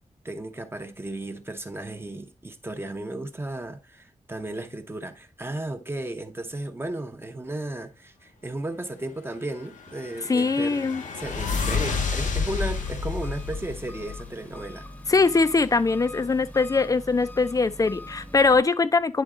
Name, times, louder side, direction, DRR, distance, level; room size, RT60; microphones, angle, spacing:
voice 1, 0.2-14.9, right 1 dB, 20° right, 0.7 m, -34 dB
sound 1, 9.7-14.7, left 5 dB, 90° left, 1.0 m, -30 dB
voice 2, 10.3-11.0 15.1-19.2, left 4 dB, 30° left, 0.5 m, -22 dB
Engine, 11.9-18.6, left 1 dB, 10° left, 0.9 m, -43 dB
10.0 x 4.0 x 3.7 m
wide cardioid pair, 150°, 13 cm